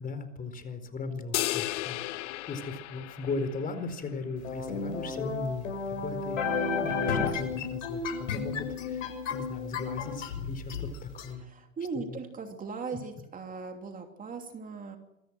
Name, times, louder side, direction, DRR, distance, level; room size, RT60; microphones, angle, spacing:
voice 1, 0.0-11.4 12.1-12.2, left 3 dB, 20° left, 10 dB, 4.5 m, -38 dB
sound 1, 1.3-3.9, left 17 dB, 65° left, 1.0 m, -34 dB
sound 2, 4.4-11.3, left 5 dB, 80° left, 7.1 m, -32 dB
voice 2, 11.4-15.0, right 4 dB, 20° right, 4 dB, 3.1 m, -39 dB
27.0 x 23.5 x 6.2 m, 0.88 s
hypercardioid pair, 110°, 38 cm